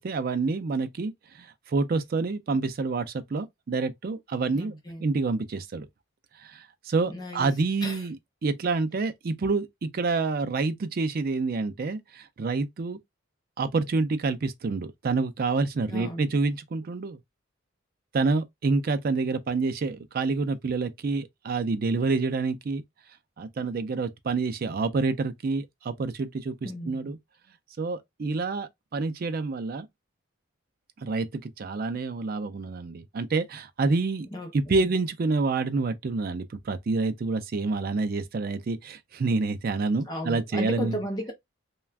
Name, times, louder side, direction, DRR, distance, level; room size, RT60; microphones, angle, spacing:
voice 1, 0.0-5.9 6.4-8.2 8.4-13.0 13.6-17.2 18.1-22.8 23.4-27.2 27.8-29.9 31.0-34.3 34.5-41.0, right 3 dB, 45° right, 0.4 m, -28 dB
voice 2, 4.5-5.1 7.1-7.5 7.8-8.1 15.9-16.3 26.6-27.1 34.3-34.5 40.1-41.3, equal, 20° left, 0.6 m, -34 dB
2.4 x 2.2 x 3.3 m
head